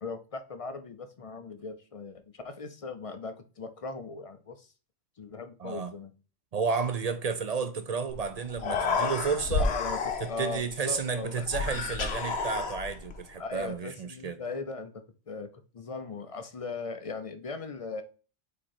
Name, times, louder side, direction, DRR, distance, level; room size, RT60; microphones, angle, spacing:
voice 1, 0.0-4.7 5.2-6.1 7.6-7.7 9.6-11.5 13.4-15.5 15.7-18.0, left 4 dB, 45° left, 0.4 m, -39 dB
voice 2, 5.6-5.9 6.5-9.7 10.2-14.4, right 5 dB, 50° right, 0.5 m, -32 dB
Human voice, 8.1-8.2 8.5-10.6 11.5-13.2, left 4 dB, 60° left, 1.0 m, -30 dB
5.1 x 4.3 x 4.3 m
omnidirectional pair, 1.2 m